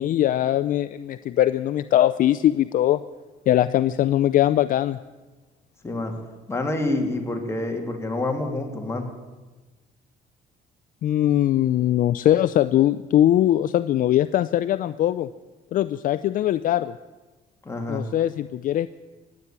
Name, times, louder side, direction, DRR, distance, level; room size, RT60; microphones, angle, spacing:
voice 1, 0.0-3.0 3.5-5.0 11.0-15.3 15.7-17.0 17.9-18.9, left 12 dB, 55° left, 13 dB, 0.5 m, -21 dB
voice 2, 6.5-9.1 17.6-18.1, left 2 dB, 15° left, 3 dB, 2.5 m, -27 dB
15.5 x 9.6 x 8.8 m, 1.2 s
cardioid pair, 110°, 17 cm